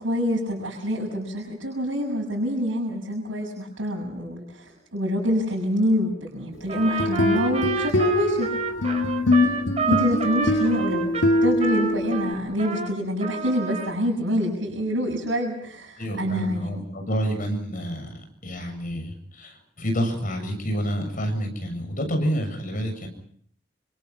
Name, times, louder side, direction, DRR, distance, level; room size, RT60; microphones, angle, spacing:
voice 1, 0.0-8.5 9.9-16.8, equal, 90° right, -2 dB, 6.9 m, -26 dB
Trumpet, 6.7-12.9 13.2-14.0, right 5 dB, 35° right, 5.0 m, -30 dB
sound 1, 6.8-12.3, left 2 dB, 80° left, 1.7 m, -23 dB
voice 2, 16.0-23.1, equal, 45° left, 5 dB, 7.2 m, -29 dB
27.5 x 25.0 x 5.9 m, 0.64 s
head